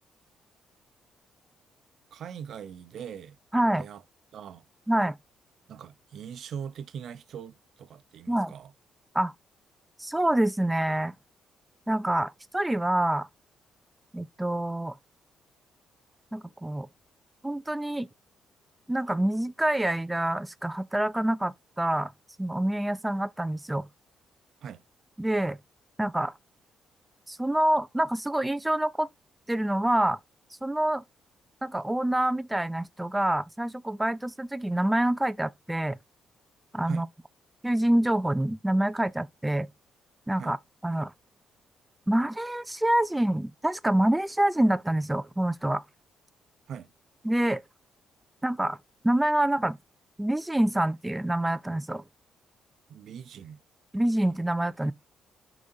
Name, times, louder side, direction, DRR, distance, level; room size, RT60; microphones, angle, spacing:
voice 1, 2.1-3.4 3.8-4.0 4.3-4.6 5.7-8.7 24.6-24.8 36.9-37.1 40.4-40.6 46.7-46.9 52.9-53.6, right 8 dB, 65° right, 0.7 m, -41 dB
voice 2, 3.5-3.9 4.9-5.2 8.3-8.5 9.1-9.3 10.0-11.1 11.9-13.3 14.1-15.0 16.3-16.9 17.4-18.1 18.9-22.1 22.4-23.9 25.2-25.6 26.0-26.3 27.3-29.1 29.5-30.2 30.6-31.0 31.6-36.0 36.7-37.1 37.6-39.7 40.3-40.6 40.8-41.1 42.1-45.8 47.2-47.6 48.4-48.8 49.0-49.8 50.2-52.0 53.9-54.9, right 1 dB, 10° right, 0.3 m, -26 dB
9.3 x 5.0 x 2.5 m
cardioid pair, 95°, 0 cm